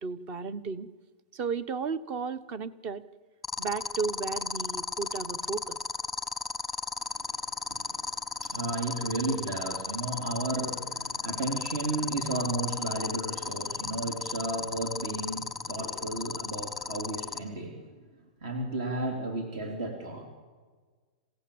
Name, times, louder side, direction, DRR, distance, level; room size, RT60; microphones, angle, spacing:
voice 1, 0.0-0.9 1.3-3.0 3.6-5.8, right 5 dB, 30° right, 17 dB, 1.0 m, -34 dB
sound 1, 3.4-17.4, left 5 dB, ahead, 1.3 m, -33 dB
voice 2, 7.0-17.9 18.4-20.3, right 2 dB, 55° right, 4 dB, 3.5 m, -34 dB
27.0 x 16.5 x 8.7 m, 1.5 s
supercardioid pair, 160°, 4 cm